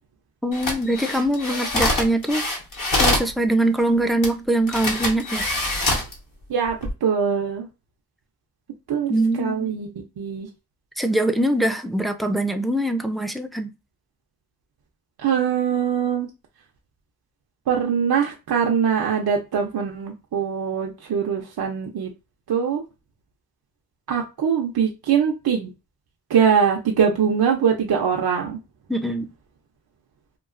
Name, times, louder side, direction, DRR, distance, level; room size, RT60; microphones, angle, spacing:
voice 1, 0.4-2.4 3.0-5.5 9.1-9.7 11.0-13.7 28.9-29.3, right 1 dB, ahead, 0.4 m, -23 dB
sound 1, 0.5-3.3 4.2-4.3 4.7-6.1 6.7-6.9, left 2 dB, 60° left, 1.3 m, -24 dB
voice 2, 6.5-7.7 8.9-9.9 10.2-10.5 15.2-16.3 17.7-22.1 22.5-22.8 24.1-25.7 26.3-28.6, right 7 dB, 70° right, 0.7 m, -22 dB
2.9 x 2.3 x 2.5 m
cardioid pair, 50°, 38 cm